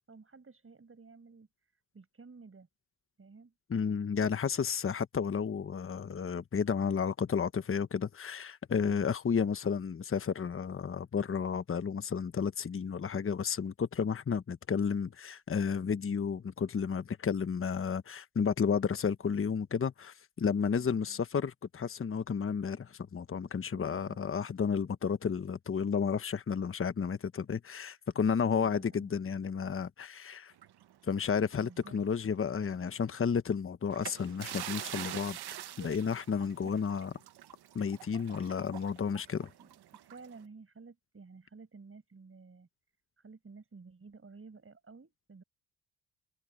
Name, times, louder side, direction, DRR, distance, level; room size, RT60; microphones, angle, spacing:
voice 1, 0.1-2.7 3.2-3.5 20.7-21.2 28.1-28.3 28.6-29.1 31.6-32.0 36.3-36.9 39.6-42.7 43.2-45.4, right 4 dB, 30° right, 7.7 m, -53 dB
voice 2, 3.7-30.5 31.1-35.4 35.8-37.1 37.7-39.5, left 6 dB, 30° left, 1.2 m, -32 dB
sound 1, 30.6-32.1 32.5-32.6 33.9-40.4, right 12 dB, 65° right, 1.6 m, -45 dB
supercardioid pair, 75°, 42 cm